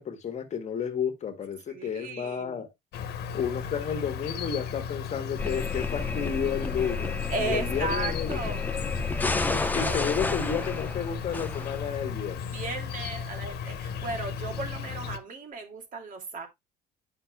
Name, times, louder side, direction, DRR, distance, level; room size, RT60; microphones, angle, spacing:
voice 1, 0.0-2.7 3.3-8.4 9.5-12.5, left 7 dB, 45° left, 1.6 m, -32 dB
voice 2, 1.7-2.6 7.3-8.7 9.2-10.1 12.4-16.5, right 3 dB, 50° right, 2.4 m, -35 dB
Insect, 2.9-15.2, left 7 dB, 70° left, 1.2 m, -36 dB
sound 1, 5.4-12.2, left 4 dB, 10° left, 0.7 m, -31 dB
9.9 x 5.7 x 2.2 m
cardioid pair, 110°, 17 cm